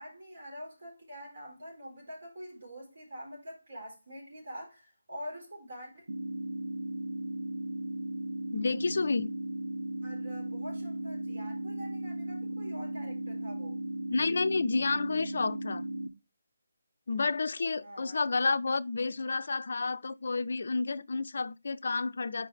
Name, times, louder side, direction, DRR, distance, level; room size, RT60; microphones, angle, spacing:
voice 1, 0.0-6.0 10.0-13.8 17.8-18.2, equal, 55° right, 4.0 m, -45 dB
sound 1, 6.1-16.1, right 1 dB, 75° right, 0.6 m, -36 dB
voice 2, 8.5-9.3 14.1-15.8 17.1-22.5, left 4 dB, 55° left, 0.4 m, -30 dB
5.5 x 4.9 x 4.9 m
figure-of-eight pair, 150°, 0 cm